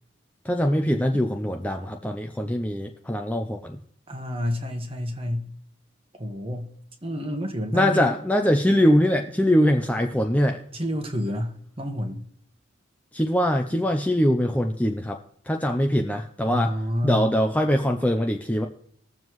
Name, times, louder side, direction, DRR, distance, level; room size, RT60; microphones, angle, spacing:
voice 1, 0.5-3.8 7.7-10.6 13.1-15.2 15.5-16.7 17.0-18.7, equal, 5° left, 4 dB, 0.5 m, -22 dB
voice 2, 4.1-5.5 6.2-6.7 7.0-8.2 10.7-12.2 16.5-17.3, equal, 30° right, 5 dB, 1.2 m, -29 dB
20.5 x 7.3 x 3.1 m, 0.66 s
head